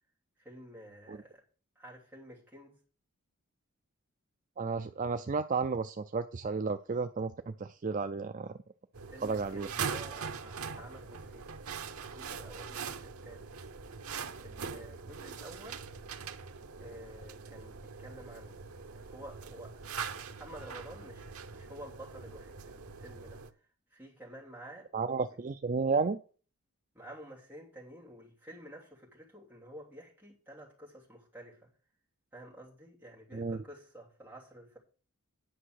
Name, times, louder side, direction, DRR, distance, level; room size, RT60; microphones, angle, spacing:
voice 1, 0.4-1.4 1.7-2.8 9.1-11.5 12.0-13.5 14.4-15.9 16.8-18.6 18.9-19.9 20.4-23.4 23.9-25.3 26.9-31.7 32.3-34.8, right 1 dB, 10° right, 3.0 m, -51 dB
voice 2, 4.6-8.5 9.2-9.7 24.9-26.2 33.3-33.6, right 4 dB, 35° right, 0.4 m, -32 dB
sound 1, 8.9-23.5, right 6 dB, 80° right, 0.8 m, -42 dB
10.0 x 5.8 x 6.4 m
head